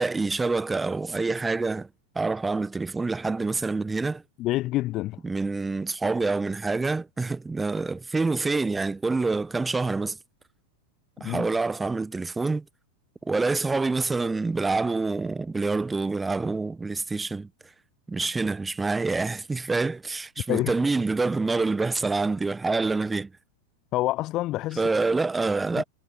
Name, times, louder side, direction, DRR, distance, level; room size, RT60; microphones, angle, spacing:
voice 1, 0.0-1.9 2.1-4.2 5.2-10.2 11.2-12.6 13.2-17.5 18.1-23.3 24.8-25.8, right 3 dB, 10° right, 1.2 m, -26 dB
voice 2, 4.4-5.2 11.2-11.5 20.5-20.7 23.9-24.8 25.8-25.9, left 16 dB, 35° left, 0.5 m, -27 dB
figure-of-eight pair, 90°, 0 cm